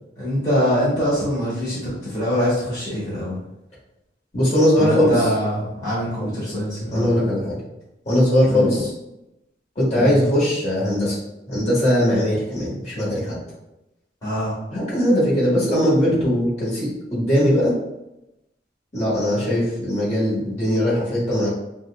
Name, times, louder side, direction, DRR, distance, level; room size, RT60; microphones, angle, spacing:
voice 1, 0.2-3.4 4.8-7.2 8.4-8.7 10.0-10.1 14.2-14.6, equal, 20° left, -10 dB, 1.4 m, -24 dB
voice 2, 4.3-5.3 6.2-6.3 6.9-7.6 8.0-8.9 9.7-11.2 11.5-13.3 14.7-17.8 18.9-21.5, equal, 40° left, -8 dB, 1.4 m, -20 dB
5.3 x 2.3 x 2.2 m, 0.90 s
head